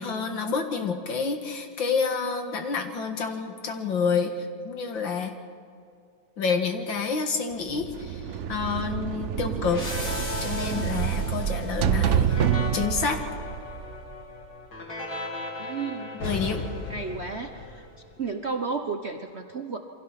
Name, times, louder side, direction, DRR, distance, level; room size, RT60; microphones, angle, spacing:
voice 1, 0.0-5.3 6.4-8.2 8.5-9.8 10.1-12.4 12.7-13.2 16.1-16.6, left 5 dB, 65° left, 5 dB, 2.4 m, -28 dB
sound 1, 7.7-14.5, right 9 dB, 70° right, 0.6 m, -28 dB
sound 2, 9.7-18.2, left 2 dB, 50° left, 4.0 m, -36 dB
voice 2, 15.6-16.2 16.5-17.9 18.2-19.8, right 4 dB, 45° right, 4 dB, 1.0 m, -33 dB
28.5 x 24.0 x 5.8 m, 2.4 s
omnidirectional pair, 2.3 m